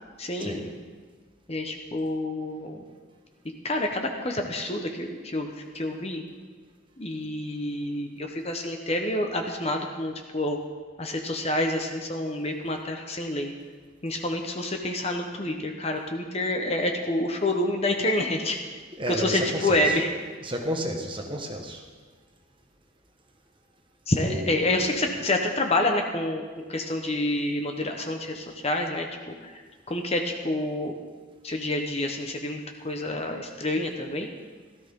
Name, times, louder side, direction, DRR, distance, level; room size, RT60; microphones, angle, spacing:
voice 1, 0.2-0.7 1.5-2.8 3.6-6.2 7.0-10.6 11.0-13.5 14.0-18.6 19.1-20.1 24.1-26.4 26.7-30.9 31.4-34.3, left 1 dB, 30° left, 3 dB, 1.0 m, -28 dB
voice 2, 19.0-19.8 20.5-21.8 24.3-24.7, equal, 25° right, 2 dB, 1.4 m, -31 dB
17.0 x 13.5 x 3.8 m, 1.5 s
head